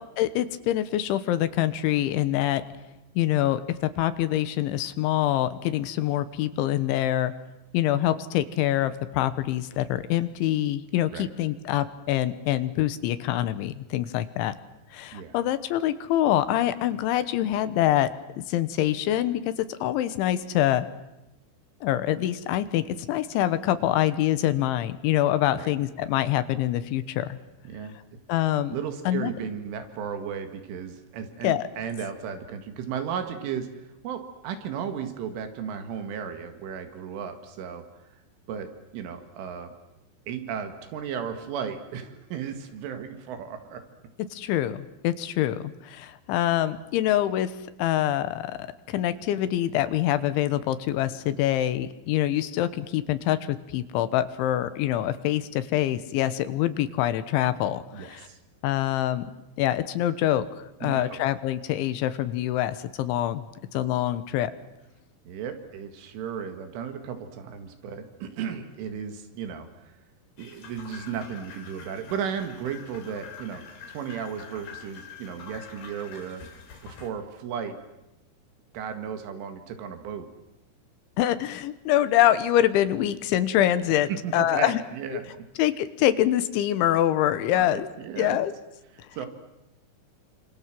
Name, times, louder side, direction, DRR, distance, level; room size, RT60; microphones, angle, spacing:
voice 1, 0.0-2.6 3.2-7.3 7.7-14.5 14.9-18.1 18.5-20.9 21.8-27.4 28.3-28.8 29.1-29.3 31.4-31.7 44.3-47.5 47.8-58.3 58.6-59.3 59.6-60.5 60.8-63.5 63.7-64.5 81.2-84.8 85.1-85.2 85.6-87.9 88.2-88.5, left 13 dB, 75° left, 13 dB, 3.4 m, -25 dB
voice 2, 27.7-28.0 28.7-37.8 38.5-39.7 40.3-43.8 57.9-58.4 60.8-61.2 65.3-70.0 70.4-76.4 76.8-77.8 78.7-80.3 84.1-85.3 87.5-88.4 89.1-89.3, right 7 dB, 80° right, 8 dB, 4.4 m, -35 dB
sound 1, 70.4-77.1, left 6 dB, 55° left, 5.5 m, -45 dB
28.0 x 26.5 x 7.6 m, 0.94 s
omnidirectional pair, 5.6 m